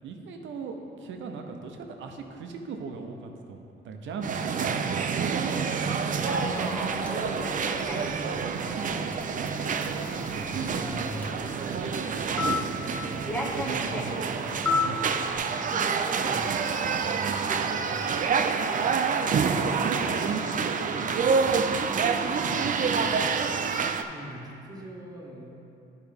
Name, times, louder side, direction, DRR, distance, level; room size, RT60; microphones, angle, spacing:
voice 1, 0.0-6.8 7.2-7.7 8.5-9.6 9.8-10.5 11.3-11.4 11.7-12.4 13.3-15.0 16.8-17.5 18.5-21.7 22.4-23.6, right 4 dB, 70° right, 4 dB, 0.8 m, -39 dB
sound 1, 4.2-24.0, right 5 dB, 45° right, 0.4 m, -28 dB
voice 2, 5.5-5.9 10.4-11.3 13.8-14.1 15.6-16.8 17.5-18.2 22.2-23.2 24.1-25.5, equal, 20° right, -2 dB, 1.4 m, -42 dB
Human voice / Subway metro underground, 5.9-15.4, left 3 dB, 5° left, 0.9 m, -35 dB
11.0 x 4.6 x 3.5 m, 2.6 s
cardioid pair, 90°, 20 cm